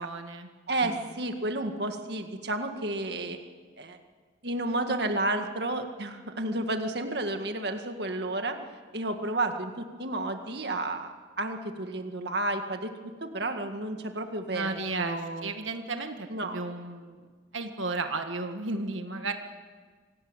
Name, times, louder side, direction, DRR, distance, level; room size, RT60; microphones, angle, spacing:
voice 1, 0.0-0.5 0.8-1.0 14.5-17.3 17.5-19.3, right 3 dB, 90° right, 6 dB, 1.8 m, -34 dB
voice 2, 0.7-3.4 3.8-4.0 4.4-8.6 8.9-14.7 15.0-15.5 16.3-16.6, right 2 dB, 60° right, 5 dB, 1.9 m, -31 dB
26.0 x 18.5 x 9.0 m, 1.5 s
head